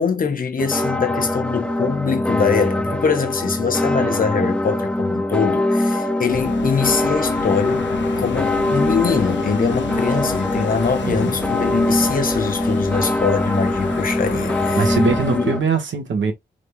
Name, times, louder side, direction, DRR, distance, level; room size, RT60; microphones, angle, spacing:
voice 1, 0.0-7.9 8.2-15.0 15.3-15.5, left 5 dB, 50° left, 1.0 m, -23 dB
sound 1, 0.6-15.6, left 1 dB, 5° left, 0.4 m, -22 dB
sound 2, 6.3-15.4, left 6 dB, 75° left, 0.9 m, -30 dB
voice 2, 11.0-11.3 14.8-16.3, right 5 dB, 90° right, 1.4 m, -21 dB
3.9 x 3.4 x 2.3 m
wide cardioid pair, 140°, 19 cm